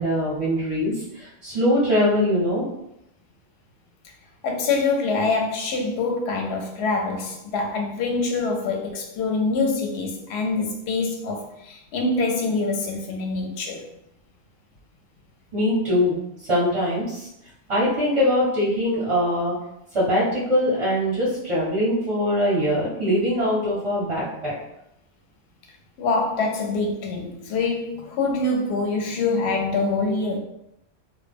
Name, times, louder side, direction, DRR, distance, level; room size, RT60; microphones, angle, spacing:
voice 1, 0.0-2.7 15.5-17.3 17.7-19.5 19.9-24.6, equal, 40° right, -6 dB, 0.5 m, -22 dB
voice 2, 4.4-13.9 26.0-30.4, left 3 dB, 70° left, 1 dB, 0.8 m, -25 dB
2.2 x 2.0 x 3.3 m, 0.82 s
omnidirectional pair, 1.3 m